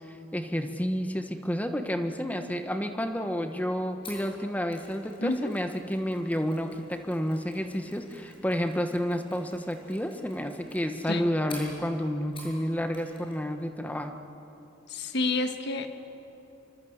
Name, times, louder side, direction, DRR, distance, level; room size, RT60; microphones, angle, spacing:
voice 1, 0.1-14.2, equal, 10° left, 6 dB, 1.3 m, -30 dB
Mechanisms, 4.0-12.6 12.9-13.4 13.6-13.8, left 2 dB, 30° left, 7.3 m, -50 dB
voice 2, 5.2-5.5 11.1-11.3 14.9-15.9, left 2 dB, 60° left, 7 dB, 1.6 m, -29 dB
26.0 x 24.5 x 8.1 m, 2.9 s
head